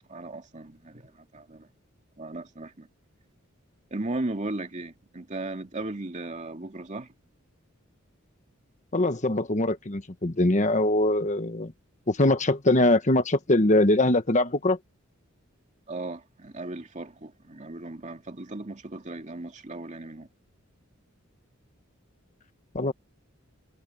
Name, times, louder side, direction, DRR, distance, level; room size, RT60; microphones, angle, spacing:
voice 1, 0.1-1.7 2.2-2.9 3.9-7.1 15.9-20.3, right 2 dB, 35° right, 2.2 m, -36 dB
voice 2, 8.9-11.7 12.1-14.8 22.7-22.9, left 2 dB, 35° left, 1.3 m, -22 dB
head